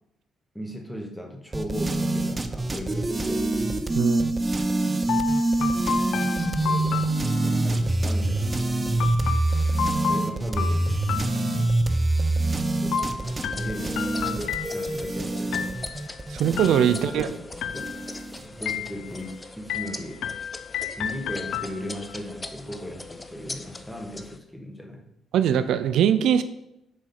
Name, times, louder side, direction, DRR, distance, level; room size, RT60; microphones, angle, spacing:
voice 1, 0.5-3.5 6.6-8.5 10.0-11.0 12.8-15.8 16.9-17.4 17.7-17.9 18.4-20.2 21.0-25.1, equal, 5° left, 3 dB, 1.5 m, -37 dB
sound 1, 1.5-18.7, right 2 dB, 25° right, 0.8 m, -25 dB
voice 2, 3.9-4.3 16.3-17.3 25.3-26.4, right 9 dB, 80° right, 12 dB, 0.5 m, -21 dB
sound 2, 5.1-7.8 9.0-12.0 12.9-15.1 15.5-16.1 16.6-17.2 17.6-18.2 18.7-19.3 19.7-22.2, left 7 dB, 75° left, 0.5 m, -32 dB
sound 3, 13.0-24.4, left 2 dB, 20° left, 0.7 m, -41 dB
7.3 x 5.2 x 5.8 m, 0.82 s
cardioid pair, 90°, 0 cm